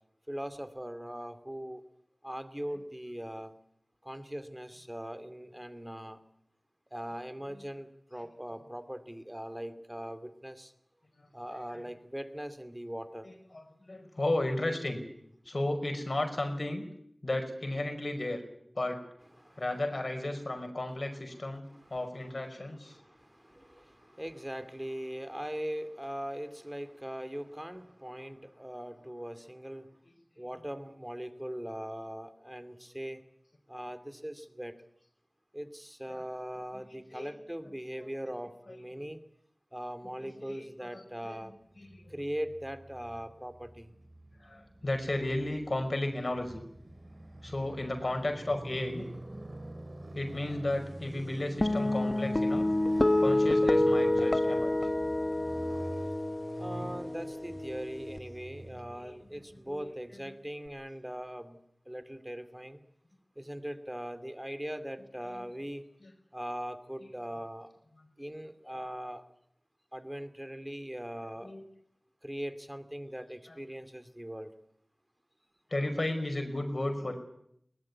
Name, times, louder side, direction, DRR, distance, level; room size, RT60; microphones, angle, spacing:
voice 1, 0.3-1.8 2.2-3.5 4.0-6.2 6.9-10.7 11.3-13.3 19.4-19.6 21.7-21.9 22.9-29.9 30.4-33.2 33.7-34.8 35.5-39.2 39.7-41.5 42.1-43.9 56.6-61.6 61.9-62.8 63.4-65.8 66.3-67.7 68.2-69.2 69.9-71.5 72.2-74.5, equal, 10° right, 10 dB, 2.5 m, -40 dB
voice 2, 13.2-15.0 15.5-16.9 17.2-18.4 18.8-19.0 19.6-21.6 21.9-23.0 36.1-36.2 37.1-37.3 38.0-38.1 40.2-41.5 41.8-42.1 44.4-46.7 47.4-49.1 50.1-52.7 53.2-54.7 58.7-59.2 59.7-59.9 65.3-65.5 66.0-66.1 67.0-67.1 71.4-71.6 73.5-73.6 75.7-77.1, left 1 dB, 60° left, 6 dB, 5.4 m, -34 dB
Motorcycle, 41.7-59.9, right 1 dB, 45° right, 2.9 m, -47 dB
sound 1, 51.6-58.2, left 1 dB, 40° left, 1.3 m, -28 dB
22.0 x 19.5 x 9.8 m, 0.72 s
wide cardioid pair, 55°, 0 cm